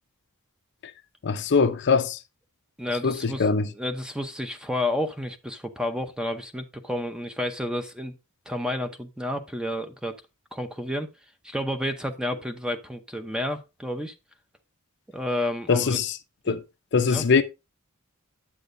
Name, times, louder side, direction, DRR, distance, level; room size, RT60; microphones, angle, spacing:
voice 1, 1.2-2.2 3.0-3.7 15.7-16.2 16.5-16.6 16.9-17.4, left 5 dB, 50° left, 0.6 m, -22 dB
voice 2, 2.8-3.5 3.7-8.1 8.5-10.2 10.5-11.1 11.4-14.1 15.1-16.0 16.5-16.6 17.0-17.3, left 1 dB, 5° right, 0.7 m, -30 dB
8.5 x 7.9 x 2.6 m
head